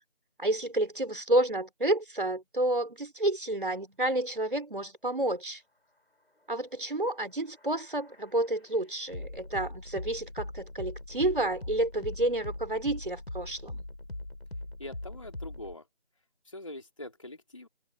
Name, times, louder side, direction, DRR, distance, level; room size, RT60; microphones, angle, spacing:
voice 1, 0.4-5.6 6.5-13.8, right 1 dB, 45° right, 3.8 m, -30 dB
sound 1, 7.1-15.7, left 1 dB, 55° left, 4.7 m, -41 dB
voice 2, 14.8-15.9 16.4-17.7, left 1 dB, 25° left, 3.2 m, -43 dB
figure-of-eight pair, 175°, 36 cm